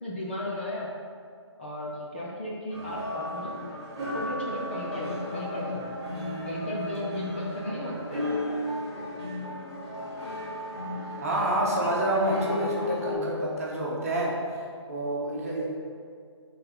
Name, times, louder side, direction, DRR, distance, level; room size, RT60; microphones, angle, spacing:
voice 1, 0.0-0.9 1.6-3.5 4.1-5.8 6.4-8.3, left 1 dB, 20° left, -5 dB, 0.7 m, -35 dB
sound 1, 2.7-13.1, left 1 dB, 15° right, 1.5 m, -34 dB
voice 2, 11.2-14.4 14.9-15.7, right 1 dB, 30° right, -4 dB, 1.3 m, -28 dB
6.5 x 4.1 x 5.8 m, 2.2 s
hypercardioid pair, 170°, 15 cm